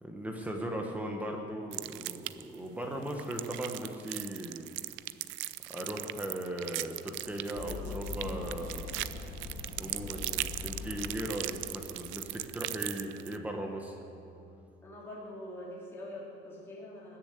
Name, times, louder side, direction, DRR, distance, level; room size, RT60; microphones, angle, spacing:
voice 1, 0.0-4.7 5.7-8.8 9.8-14.0, right 1 dB, 10° right, 1 dB, 1.0 m, -38 dB
sound 1, 1.7-2.6 3.0-13.4, right 18 dB, 85° right, 0.5 m, -39 dB
sound 2, 6.4-14.6, right 6 dB, 70° right, 3.1 m, -55 dB
Run, 7.6-12.3, left 5 dB, 90° left, 3.1 m, -42 dB
voice 2, 14.8-17.2, left 1 dB, 10° left, -6 dB, 2.8 m, -44 dB
20.0 x 7.0 x 8.3 m, 2.5 s
cardioid pair, 175°, 19 cm